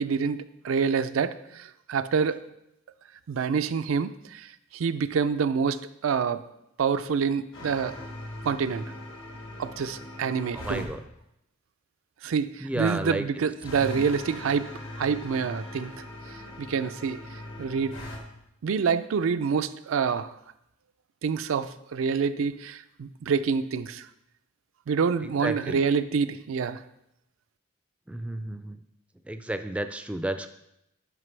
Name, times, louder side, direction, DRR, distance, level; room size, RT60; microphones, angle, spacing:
voice 1, 0.0-2.4 3.3-6.4 6.8-8.0 8.4-8.9 9.6-10.9 12.2-14.7 15.0-16.0 16.6-17.2 17.6-18.1 18.6-20.3 21.2-24.1 24.9-26.8, right 6 dB, 85° right, 11 dB, 0.4 m, -27 dB
sound 1, 7.5-10.9 13.6-18.2, left 1 dB, 75° left, 1.5 m, -40 dB
voice 2, 10.5-11.0 12.6-13.2 13.8-14.1 25.2-25.8 28.1-28.8 29.3-30.5, right 1 dB, 5° right, 9 dB, 0.3 m, -32 dB
11.0 x 5.3 x 3.3 m, 0.81 s
head